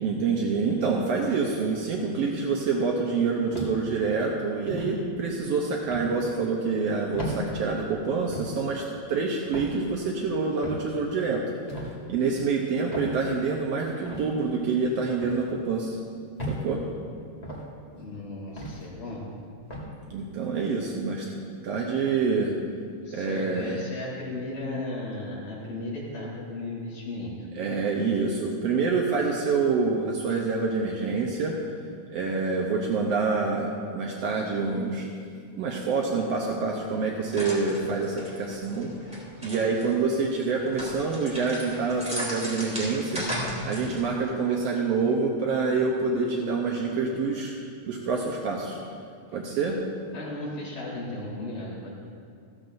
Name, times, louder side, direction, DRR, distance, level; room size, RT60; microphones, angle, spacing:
voice 1, 0.0-11.4 12.1-16.0 16.5-16.8 20.1-21.3 21.5-22.5 23.1-23.8 27.5-31.6 32.1-35.1 35.5-38.9 39.4-43.3 43.6-47.5 47.9-48.8 49.3-49.8, right 4 dB, 80° right, -1 dB, 1.4 m, -27 dB
sound 1, 3.5-4.0 4.7-4.9 5.9-6.1 7.1-7.4 8.3-8.6 9.5-9.8 10.6-10.9 11.7-11.9 12.9-13.2 14.0-14.3 15.2-15.4 16.4-16.6 17.4-17.7 18.6-18.8 19.7-19.9, equal, 25° left, 0.9 m, -35 dB
voice 2, 18.0-19.2 23.1-27.4 50.1-51.9, left 2 dB, 65° left, -7 dB, 5.1 m, -35 dB
sound 2, 37.3-39.9 40.4-44.2, equal, ahead, 2.3 m, -35 dB
15.0 x 14.0 x 2.6 m, 2.3 s
omnidirectional pair, 4.0 m